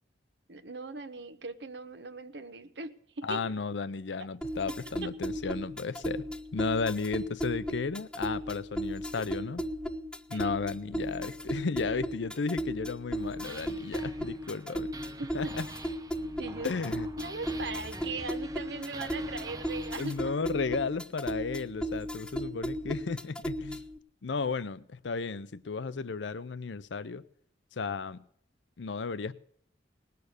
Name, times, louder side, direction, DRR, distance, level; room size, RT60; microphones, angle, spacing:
voice 1, 0.5-3.5 5.0-5.1 10.3-10.6 15.2-15.5 16.4-16.8 17.2-20.1, right 3 dB, 70° right, 1.0 m, -39 dB
voice 2, 3.2-6.3 6.5-9.6 10.3-14.9 15.3-15.7 16.6-17.1 20.0-23.8 24.2-27.2 27.7-28.2 28.8-29.3, left 4 dB, 85° left, 0.6 m, -34 dB
sound 1, 4.4-24.0, equal, 5° left, 0.5 m, -36 dB
sound 2, 13.1-20.8, right 2 dB, 20° right, 0.9 m, -46 dB
19.0 x 6.8 x 6.6 m
head